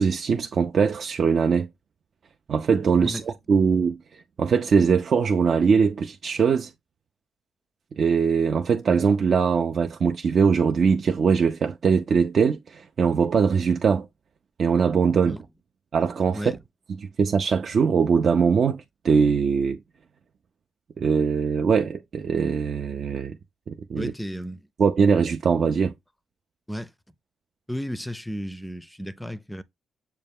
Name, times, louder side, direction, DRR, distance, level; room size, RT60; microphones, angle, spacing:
voice 1, 0.0-1.7 2.5-6.7 7.9-14.1 14.6-15.4 15.9-16.5 17.0-19.8 21.0-23.4 23.7-24.1 24.8-25.9, right 6 dB, 60° right, 0.3 m, -21 dB
voice 2, 24.0-24.6 26.7-26.9 27.7-29.6, equal, 5° left, 0.4 m, -33 dB
6.4 x 2.2 x 3.5 m
cardioid pair, 65°, 0 cm